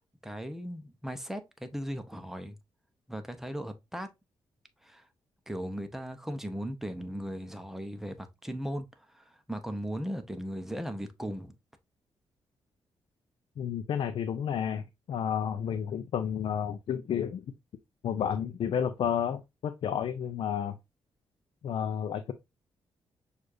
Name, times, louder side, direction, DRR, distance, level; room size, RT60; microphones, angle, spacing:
voice 1, 0.2-2.6 3.1-4.1 4.8-5.1 5.5-11.6, equal, 5° right, 0.7 m, -37 dB
voice 2, 13.6-17.4 18.0-20.8 21.6-22.3, left 8 dB, 65° left, 0.4 m, -31 dB
6.3 x 2.4 x 2.6 m
cardioid pair, 90°, 9 cm